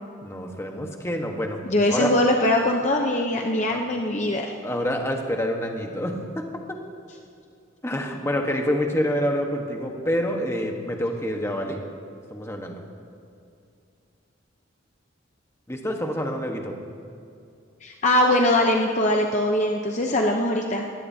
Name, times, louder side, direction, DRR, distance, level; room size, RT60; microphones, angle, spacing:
voice 1, 0.2-1.6 1.9-2.1 3.7-3.8 4.1-4.2 4.6-6.4 7.8-11.8 12.3-12.8 15.7-16.7, equal, 15° left, 2 dB, 1.3 m, -27 dB
voice 2, 1.6-4.5 17.8-20.9, left 1 dB, 35° left, 1 dB, 0.8 m, -22 dB
21.5 x 16.5 x 2.8 m, 2.5 s
head